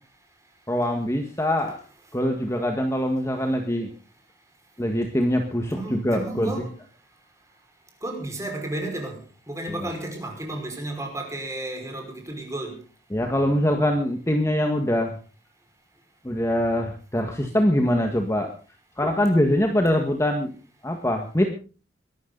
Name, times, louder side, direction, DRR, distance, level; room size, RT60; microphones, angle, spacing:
voice 1, 0.7-1.8 2.1-3.9 4.8-6.5 9.8-9.9 13.1-15.1 16.2-18.5 19.0-20.5 20.8-21.5, left 1 dB, 15° left, 1.8 m, -23 dB
voice 2, 5.7-6.8 8.0-9.2 9.5-12.8, right 1 dB, 15° right, 5.5 m, -32 dB
22.5 x 13.0 x 4.1 m
head